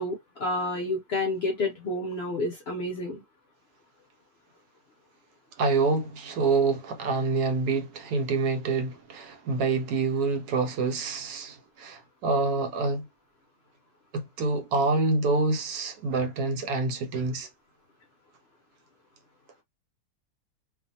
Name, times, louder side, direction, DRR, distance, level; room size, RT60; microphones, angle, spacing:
voice 1, 0.0-3.2, left 2 dB, 65° left, 0.6 m, -30 dB
voice 2, 5.6-13.1 14.1-17.5, right 3 dB, 85° right, 1.2 m, -27 dB
2.5 x 2.5 x 2.6 m
omnidirectional pair, 1.7 m